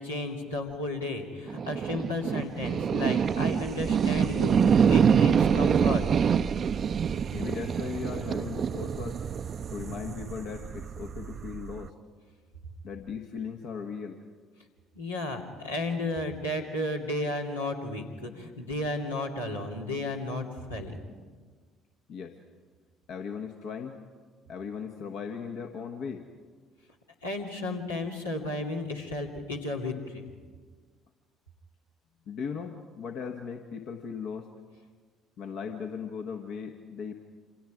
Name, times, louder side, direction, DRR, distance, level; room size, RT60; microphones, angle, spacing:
voice 1, 0.0-6.1 14.9-21.1 27.2-30.3, left 2 dB, 85° left, -2 dB, 2.5 m, -33 dB
sound 1, 1.5-11.9, right 7 dB, 40° right, 0.6 m, -26 dB
voice 2, 7.3-9.2 9.7-11.9 12.8-14.2 22.1-22.4 23.1-24.0 24.5-26.3 32.3-34.5 35.4-37.1, left 6 dB, 55° left, 4 dB, 1.4 m, -37 dB
28.5 x 26.5 x 5.0 m, 1.5 s
figure-of-eight pair, 50°, 0 cm